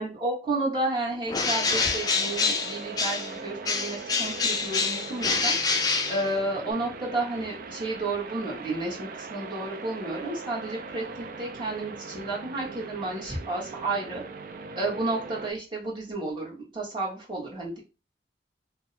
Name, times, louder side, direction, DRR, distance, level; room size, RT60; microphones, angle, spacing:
voice 1, 0.0-5.5 6.1-11.0 11.4-14.2 14.7-17.8, right 2 dB, 25° right, -4 dB, 1.2 m, -31 dB
Bird, 1.3-3.4 3.6-6.7, left 4 dB, 20° left, 0.4 m, -27 dB
sound 1, 1.6-15.5, right 4 dB, 50° right, 0.3 m, -40 dB
2.7 x 2.1 x 3.9 m, 0.31 s
head